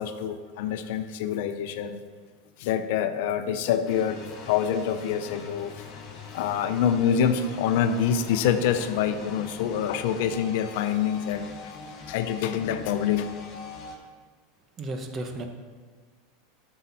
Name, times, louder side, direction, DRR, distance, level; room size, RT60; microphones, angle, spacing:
voice 1, 0.0-2.0 2.6-5.7 6.3-11.7 12.1-13.3, left 8 dB, 70° left, 9 dB, 0.7 m, -26 dB
sound 1, 3.8-14.0, left 4 dB, 45° left, 2.4 m, -43 dB
voice 2, 14.8-15.5, right 2 dB, 30° right, 4 dB, 1.3 m, -33 dB
11.5 x 6.6 x 4.3 m, 1.5 s
hypercardioid pair, 110°, 0 cm